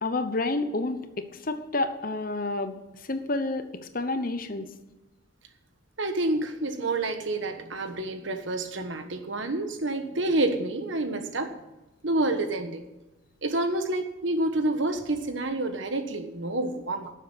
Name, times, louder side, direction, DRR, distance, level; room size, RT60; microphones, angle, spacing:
voice 1, 0.0-2.8 3.1-3.7 3.9-4.7, left 2 dB, 45° left, 9 dB, 0.9 m, -29 dB
voice 2, 6.0-11.6 12.0-12.9 13.4-17.1, right 2 dB, 70° right, 8 dB, 1.3 m, -28 dB
12.0 x 7.6 x 6.3 m, 1.0 s
head